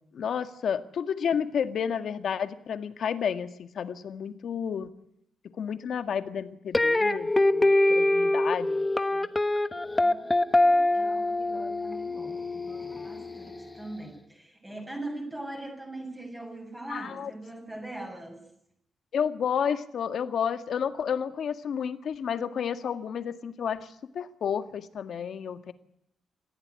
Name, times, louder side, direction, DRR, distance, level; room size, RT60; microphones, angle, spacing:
voice 1, 0.1-4.9 5.6-8.9 9.1-9.3 16.9-17.3 19.1-25.7, left 7 dB, 60° left, 10 dB, 1.9 m, -31 dB
sound 1, 6.7-13.8, left 2 dB, 15° left, 1.2 m, -25 dB
voice 2, 10.0-18.4, right 2 dB, 10° right, 2 dB, 7.0 m, -41 dB
28.0 x 15.5 x 9.6 m, 0.75 s
wide cardioid pair, 145°, 0 cm